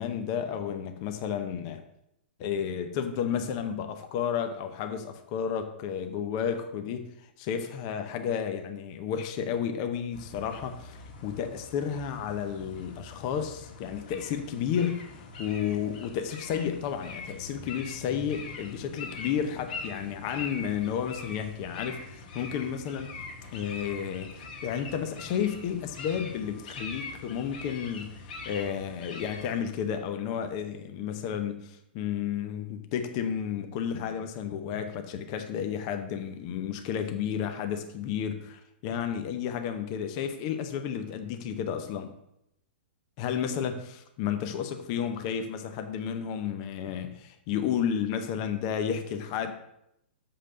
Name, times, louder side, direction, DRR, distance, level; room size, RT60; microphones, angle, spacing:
voice 1, 0.0-1.8 2.4-23.1 23.5-42.1 43.2-49.5, left 8 dB, 35° left, 7 dB, 0.7 m, -32 dB
sound 1, 10.1-29.6, left 4 dB, 50° left, 1.8 m, -43 dB
6.8 x 5.7 x 6.7 m, 0.80 s
hypercardioid pair, 165°, 6 cm